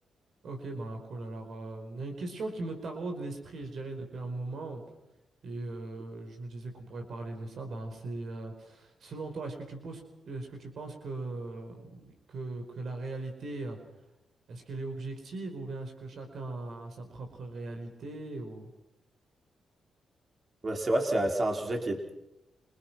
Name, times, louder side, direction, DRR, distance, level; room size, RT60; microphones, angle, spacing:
voice 1, 0.4-4.8 5.4-13.8 14.5-18.7, right 2 dB, 65° right, 5 dB, 5.1 m, -39 dB
voice 2, 20.6-22.1, right 1 dB, 45° right, 2 dB, 4.9 m, -28 dB
29.0 x 23.0 x 6.1 m, 0.90 s
supercardioid pair, 50°, 0 cm